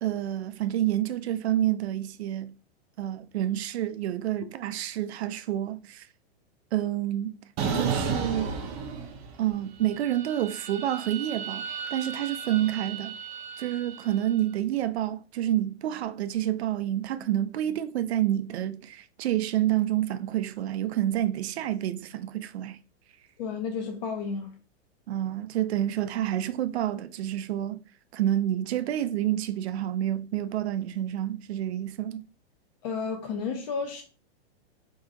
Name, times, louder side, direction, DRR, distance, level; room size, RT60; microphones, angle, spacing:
voice 1, 0.0-2.5 3.0-6.1 6.7-8.5 9.4-13.2 13.6-22.8 25.1-27.8 28.1-32.3, right 12 dB, 85° right, 0.5 m, -28 dB
sound 1, 7.6-9.5 9.9-14.2, right 6 dB, 20° right, 0.3 m, -33 dB
voice 2, 23.4-24.6 32.8-34.0, left 5 dB, 45° left, 0.5 m, -32 dB
2.7 x 2.4 x 3.6 m
hypercardioid pair, 140°, 32 cm